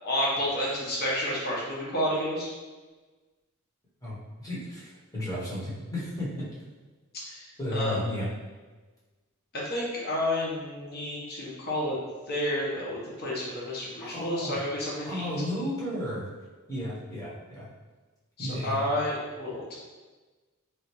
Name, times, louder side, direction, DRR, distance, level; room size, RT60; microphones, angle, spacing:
voice 1, 0.0-2.5 7.3-7.4 7.7-8.0 9.5-12.0 12.3-15.3 18.4-19.7, left 1 dB, 50° left, -5 dB, 0.9 m, -30 dB
voice 2, 4.0-6.5 7.6-8.3 14.0-14.6 15.0-16.3 16.7-17.7 18.4-18.9, left 1 dB, 15° left, -8 dB, 1.0 m, -33 dB
3.2 x 2.5 x 2.9 m, 1.3 s
head